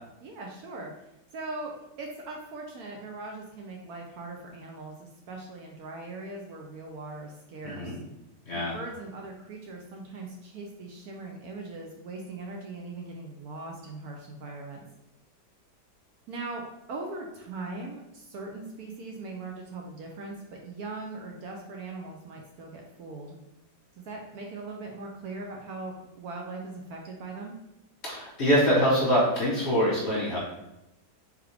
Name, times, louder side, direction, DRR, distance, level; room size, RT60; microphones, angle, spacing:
voice 1, 0.2-8.0 8.5-14.8 16.3-16.6 16.9-20.4 20.6-23.4 24.1-27.5, right 3 dB, 70° right, 0 dB, 1.0 m, -40 dB
voice 2, 7.6-7.9 8.5-8.8 28.0-30.4, equal, 45° left, -5 dB, 1.1 m, -24 dB
3.5 x 3.4 x 3.2 m, 0.87 s
omnidirectional pair, 1.9 m